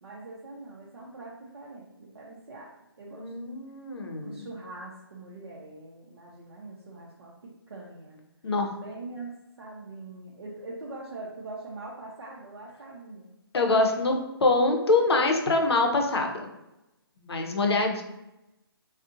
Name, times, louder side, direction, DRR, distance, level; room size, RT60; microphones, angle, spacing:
voice 1, 0.0-2.7 3.0-3.3 4.2-8.2 8.8-13.4 17.6-17.7, right 2 dB, 85° right, -4 dB, 0.5 m, -43 dB
voice 2, 3.1-4.3 8.4-8.7 13.5-16.5 17.2-18.0, left 3 dB, 85° left, 3 dB, 0.5 m, -24 dB
2.5 x 2.0 x 2.4 m, 0.96 s
hypercardioid pair, 145°, 13 cm